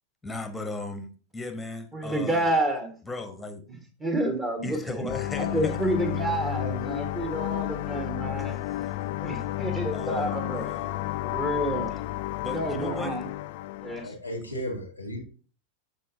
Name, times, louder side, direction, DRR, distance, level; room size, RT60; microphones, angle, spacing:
voice 1, 0.2-2.5 3.0-3.6 4.6-5.8 6.3-6.4 8.4-9.1 9.9-10.9 12.4-13.2 14.0-14.2, left 2 dB, 5° left, 8 dB, 1.2 m, -37 dB
voice 2, 1.9-3.0 4.0-5.1 5.4-8.6 9.2-10.7 11.2-11.9 12.5-13.3 13.8-14.1, right 1 dB, 15° right, 7 dB, 1.6 m, -29 dB
sound 1, 5.1-14.1, left 16 dB, 50° left, 0.3 m, -31 dB
voice 3, 14.0-15.2, equal, 90° right, 0 dB, 2.4 m, -34 dB
12.5 x 4.3 x 2.8 m, 0.37 s
figure-of-eight pair, 90°, 0 cm